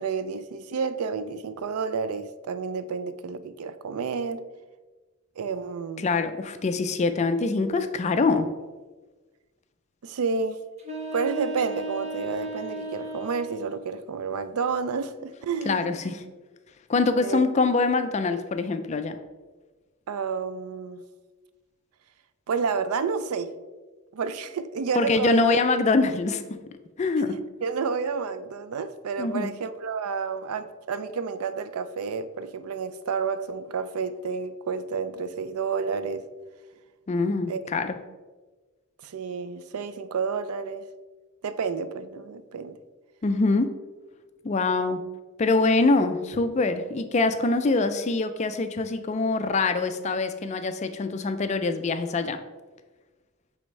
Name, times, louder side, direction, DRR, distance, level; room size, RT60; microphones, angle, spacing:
voice 1, 0.0-4.4 5.4-6.1 10.0-10.6 11.1-16.0 17.2-17.4 20.1-21.0 22.5-23.5 24.1-25.5 27.3-36.2 37.5-37.6 39.0-40.8 41.4-42.8, right 5 dB, 85° right, 0.4 m, -30 dB
voice 2, 6.0-8.5 15.7-16.2 16.9-19.2 24.9-26.6 27.0-27.4 29.2-29.5 37.1-38.0 43.2-43.7 44.4-45.0 45.4-52.4, left 3 dB, 30° left, 0.3 m, -24 dB
sound 1, 10.8-13.8, right 1 dB, 30° right, 0.7 m, -35 dB
8.6 x 3.5 x 3.1 m
head